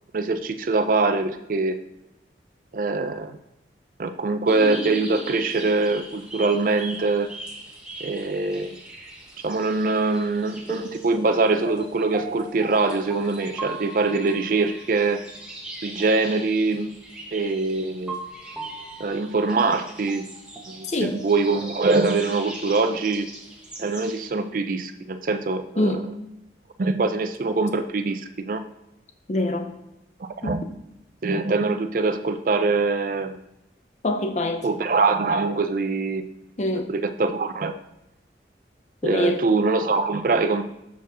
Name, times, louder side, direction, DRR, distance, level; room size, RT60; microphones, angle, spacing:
voice 1, 0.1-1.8 2.7-3.4 4.0-7.3 8.0-8.8 9.4-15.2 15.8-16.9 17.3-18.2 19.0-20.2 20.7-23.3 23.8-26.0 26.8-28.6 30.2-30.6 31.2-33.4 34.6-36.2 36.9-37.7 39.0-40.6, right 3 dB, 50° right, 8 dB, 0.4 m, -23 dB
sound 1, 4.5-24.3, right 2 dB, 5° right, 1.2 m, -39 dB
voice 2, 29.3-29.7 30.4-30.5 34.0-34.6 36.6-36.9 39.0-39.4, left 1 dB, 40° left, 6 dB, 0.6 m, -24 dB
7.0 x 4.4 x 6.0 m, 0.89 s
head